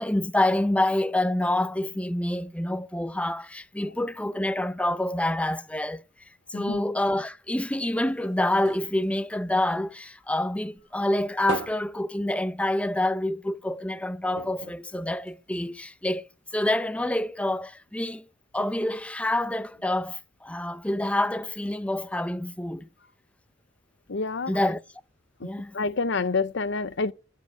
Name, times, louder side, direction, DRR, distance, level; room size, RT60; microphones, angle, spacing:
voice 1, 0.0-6.0 6.5-18.3 18.5-22.9 24.5-24.8 25.4-25.8, left 1 dB, 5° left, 0.6 m, -27 dB
sound 1, 7.7-10.4 10.8-13.0 13.3-13.4 13.7-13.9 14.3-15.8 16.5-16.6, right 3 dB, 65° right, 1.5 m, -40 dB
voice 2, 24.1-24.5 25.4-27.1, left 4 dB, 65° left, 0.8 m, -28 dB
10.5 x 7.2 x 9.3 m
head